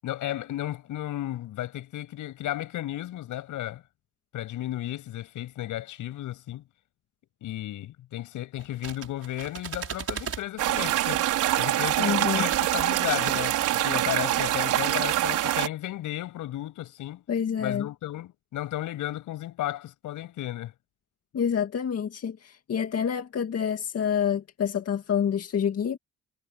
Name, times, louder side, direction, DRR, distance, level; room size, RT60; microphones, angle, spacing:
voice 1, 0.0-3.8 4.3-6.6 7.4-11.3 11.6-17.2 17.6-20.7, left 14 dB, 85° left, 7.8 m, -34 dB
sound 1, 8.6-10.5 11.8-12.1 12.4-13.7, right 7 dB, 50° right, 6.4 m, -37 dB
sound 2, 10.6-15.7, right 14 dB, 90° right, 4.6 m, -25 dB
voice 2, 12.0-12.4 17.3-17.9 21.3-26.0, left 8 dB, 55° left, 2.3 m, -27 dB
cardioid pair, 90°, 30 cm